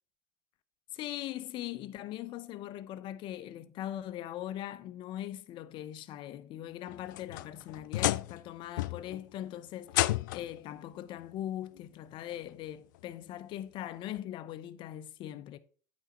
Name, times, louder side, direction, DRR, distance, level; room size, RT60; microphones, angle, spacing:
voice 1, 0.9-15.6, left 12 dB, 50° left, 0.8 m, -41 dB
sound 1, 6.9-8.5 8.8-9.2 9.9-10.6 11.8-11.9 12.5-12.6 14.2-14.3, left 17 dB, 70° left, 0.4 m, -32 dB
9.1 x 4.2 x 5.7 m
hypercardioid pair, 80°, 11 cm